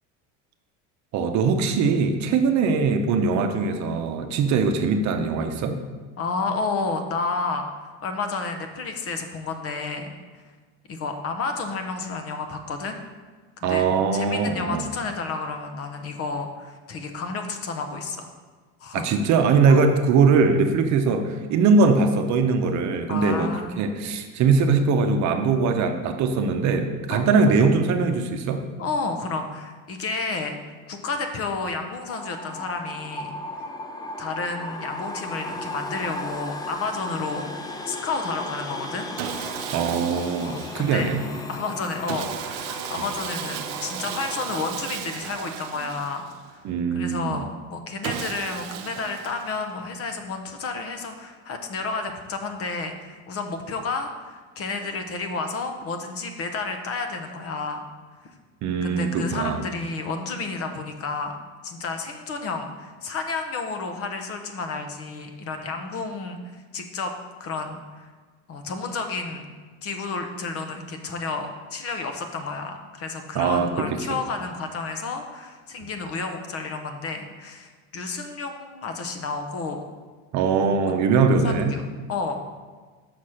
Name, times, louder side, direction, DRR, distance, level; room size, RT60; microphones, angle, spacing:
voice 1, 1.1-5.7 13.6-14.9 18.9-28.7 39.7-41.2 46.6-47.5 58.6-59.6 73.3-74.0 75.8-75.9 80.3-81.7, right 4 dB, 50° right, 5 dB, 0.8 m, -21 dB
voice 2, 6.2-10.1 10.9-13.0 13.6-13.8 14.1-18.3 18.8-19.1 19.7-19.8 23.1-23.7 27.1-27.2 28.8-30.6 30.9-33.4 34.2-37.5 37.9-39.1 40.4-41.1 41.5-46.7 46.9-57.9 58.8-61.4 61.6-67.1 67.4-68.1 68.5-69.5 69.8-79.8 80.8-80.9 81.4-81.8 82.1-82.4, left 4 dB, 40° left, 6 dB, 0.9 m, -31 dB
sound 1, 32.1-44.7, left 2 dB, 10° left, 0.4 m, -36 dB
Sawing, 39.2-41.2 42.1-46.6 48.0-49.9, right 11 dB, 85° right, 0.6 m, -35 dB
6.0 x 4.2 x 6.4 m, 1.4 s
cardioid pair, 125°, 36 cm